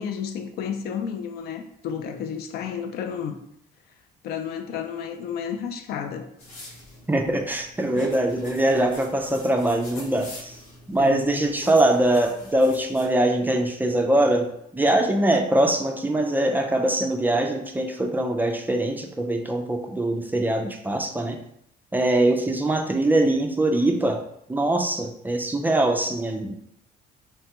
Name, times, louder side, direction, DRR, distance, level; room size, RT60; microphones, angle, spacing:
voice 1, 0.0-3.4 4.2-6.3 7.9-8.1 11.0-11.2, left 7 dB, 70° left, 0.4 m, -32 dB
sound 1, 6.4-13.1, left 2 dB, 85° left, 0.9 m, -44 dB
voice 2, 7.1-10.6 10.9-21.4 21.9-24.2 24.5-26.5, right 1 dB, 10° right, 0.3 m, -22 dB
3.2 x 2.2 x 2.8 m
cardioid pair, 110°, 17 cm